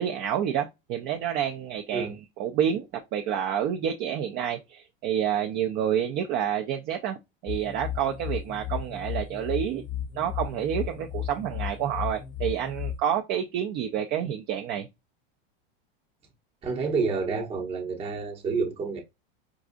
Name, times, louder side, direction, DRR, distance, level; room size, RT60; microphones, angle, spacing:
voice 1, 0.0-7.2 7.4-9.8 10.2-14.9, right 9 dB, 35° right, 0.4 m, -29 dB
sound 1, 7.5-13.0, left 10 dB, 15° left, 0.6 m, -34 dB
voice 2, 16.6-19.0, right 4 dB, 20° right, 0.8 m, -29 dB
4.7 x 2.4 x 2.4 m
supercardioid pair, 140°, 30 cm